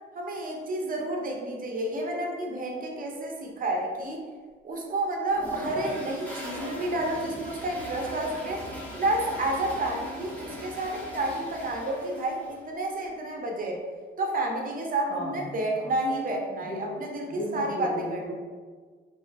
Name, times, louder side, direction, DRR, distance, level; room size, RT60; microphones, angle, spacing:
voice 1, 0.1-4.2 4.6-8.7 9.0-13.8 14.2-18.2, right 1 dB, 45° right, 0 dB, 0.7 m, -30 dB
Toilet flush, 5.3-12.6, equal, 10° left, 1.2 m, -39 dB
voice 2, 15.1-15.4 15.7-15.9 16.5-17.0 17.2-18.3, equal, 60° left, -4 dB, 1.3 m, -35 dB
3.2 x 2.9 x 3.3 m, 1.5 s
cardioid pair, 90°, 20 cm